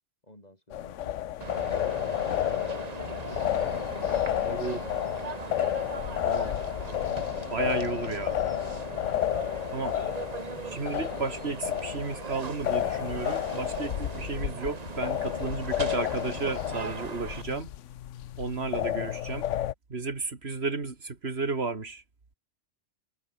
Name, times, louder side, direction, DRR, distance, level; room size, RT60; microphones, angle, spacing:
voice 1, 0.2-1.2 1.6-2.6 2.9-5.5 10.5-10.8, left 1 dB, 35° left, 7.3 m, -52 dB
sound 1, 0.7-19.7, left 12 dB, 90° left, 1.0 m, -31 dB
sound 2, 1.4-17.4, right 5 dB, 35° right, 1.0 m, -40 dB
voice 2, 4.5-4.8 6.2-6.6 7.5-8.4 9.7-10.0 10.7-17.7 18.4-19.5 19.9-22.0, right 4 dB, 60° right, 2.7 m, -33 dB
omnidirectional pair, 1.2 m